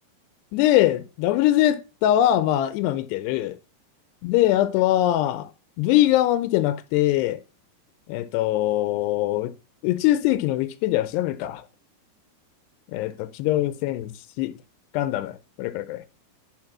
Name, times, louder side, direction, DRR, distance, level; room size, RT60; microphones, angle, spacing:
voice 1, 0.5-3.6 4.2-5.5 5.8-7.4 8.1-9.5 9.8-11.6 12.9-14.1 14.4-14.5 14.9-16.0, left 13 dB, 80° left, 2.7 m, -22 dB
11.5 x 4.8 x 6.0 m
omnidirectional pair, 4.9 m